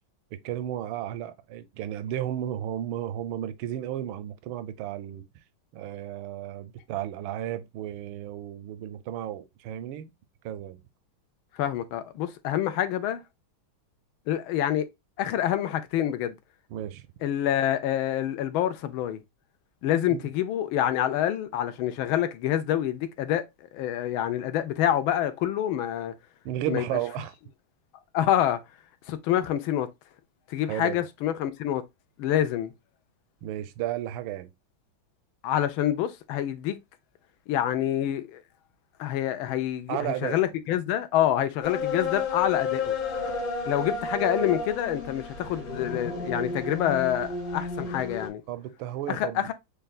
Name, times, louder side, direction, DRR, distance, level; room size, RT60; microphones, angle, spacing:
voice 1, 0.4-5.2 5.7-10.1 10.4-10.8 16.7-17.1 20.1-20.3 26.4-27.3 30.7-31.0 33.4-34.5 39.9-40.4 47.8-48.0 48.5-49.5, right 12 dB, 80° right, 1.3 m, -33 dB
voice 2, 11.5-13.2 14.3-14.9 15.2-16.4 17.2-19.2 19.8-26.1 26.7-26.8 28.1-28.6 29.1-29.9 30.5-31.8 32.2-32.7 35.4-36.8 37.5-38.4 39.0-42.9 43.7-48.4 49.1-49.5, left 11 dB, 80° left, 1.3 m, -27 dB
sound 1, 41.6-48.3, left 4 dB, 55° left, 2.0 m, -31 dB
6.4 x 2.3 x 2.3 m
omnidirectional pair, 2.3 m